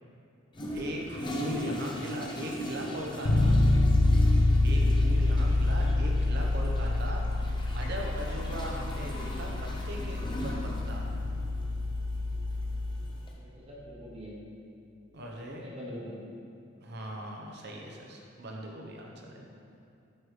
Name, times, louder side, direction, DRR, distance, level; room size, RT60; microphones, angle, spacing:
Toilet flush, 0.5-13.3, equal, 25° left, 0.7 m, -40 dB
voice 1, 0.7-3.6 4.3-7.2 7.7-11.1 15.1-15.7 16.8-19.5, equal, 55° right, 0 dB, 0.9 m, -39 dB
Bass guitar, 3.3-13.1, left 2 dB, 60° left, 0.7 m, -26 dB
voice 2, 13.4-14.4 15.6-16.2 19.4-19.5, equal, 30° right, -5 dB, 1.2 m, -44 dB
8.4 x 3.3 x 4.9 m, 2.6 s
head